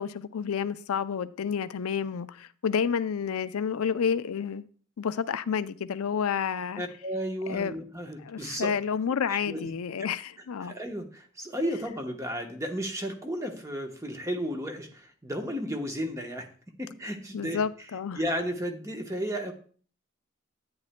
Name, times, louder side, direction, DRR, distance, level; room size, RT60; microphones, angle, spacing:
voice 1, 0.0-4.7 5.0-6.8 7.5-7.8 8.2-10.7 17.3-18.2, left 7 dB, 85° left, 0.4 m, -30 dB
voice 2, 6.8-8.7 9.3-9.7 10.6-16.5 16.8-17.6 18.2-19.5, equal, 15° right, 1.0 m, -33 dB
10.5 x 9.6 x 2.2 m
head